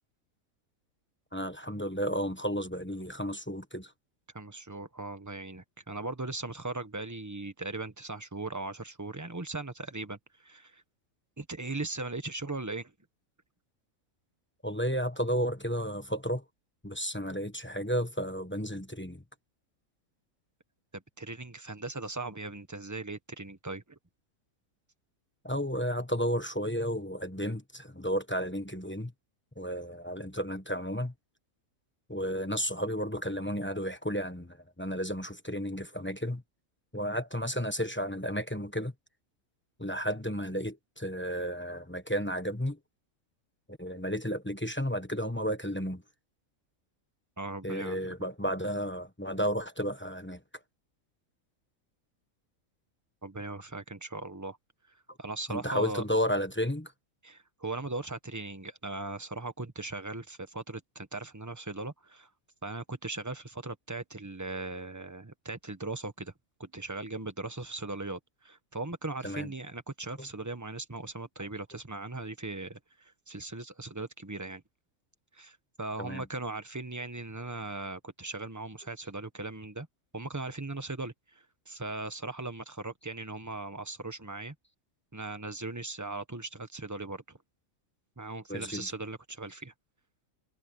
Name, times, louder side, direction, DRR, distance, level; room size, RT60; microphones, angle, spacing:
voice 1, 1.3-3.9 14.6-16.4 16.8-19.2 25.4-29.1 29.6-31.1 32.1-36.4 36.9-38.9 39.8-42.8 43.8-46.0 47.6-50.4 55.1-55.2 55.5-56.9 69.2-69.5 76.0-76.2 88.5-88.9, equal, 10° left, 1.1 m, -32 dB
voice 2, 4.3-10.8 11.4-12.9 20.9-24.0 47.4-48.1 53.2-54.6 54.9-56.0 57.2-62.3 62.6-66.3 66.6-74.6 75.3-79.9 80.1-84.5 85.1-87.4 88.2-89.7, right 2 dB, 15° right, 1.2 m, -39 dB
omnidirectional pair, 1.5 m